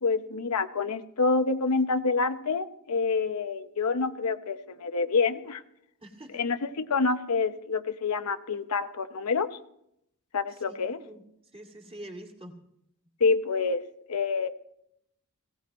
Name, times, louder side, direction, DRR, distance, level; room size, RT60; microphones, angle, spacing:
voice 1, 0.0-5.6 6.3-9.5 10.3-11.0 13.2-13.8 14.1-14.5, left 4 dB, 85° left, 8 dB, 0.8 m, -27 dB
voice 2, 6.0-6.4 10.5-11.2 11.5-12.6, right 1 dB, 25° right, 1 dB, 2.4 m, -45 dB
19.5 x 17.0 x 3.1 m, 0.77 s
head